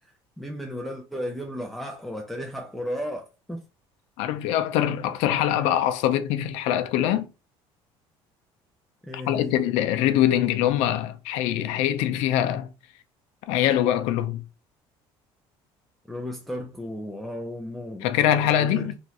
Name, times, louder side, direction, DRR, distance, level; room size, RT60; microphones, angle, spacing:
voice 1, 0.0-3.6 9.0-9.6 16.1-18.1 18.6-18.9, left 1 dB, ahead, 0.4 m, -34 dB
voice 2, 4.2-7.3 9.3-12.7 13.5-14.4 18.0-18.9, left 11 dB, 85° left, 0.5 m, -23 dB
3.1 x 2.4 x 2.8 m
cardioid pair, 165°, 10 cm